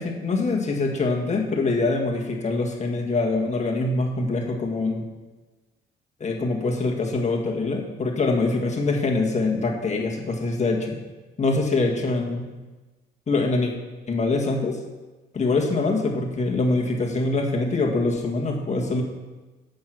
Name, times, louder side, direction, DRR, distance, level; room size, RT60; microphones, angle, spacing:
voice 1, 0.0-5.1 6.2-11.0 11.4-12.5 13.3-13.7 14.1-14.8 15.3-19.0, left 3 dB, 35° left, 1 dB, 1.8 m, -24 dB
8.4 x 6.5 x 6.2 m, 1.2 s
cardioid pair, 90°, 20 cm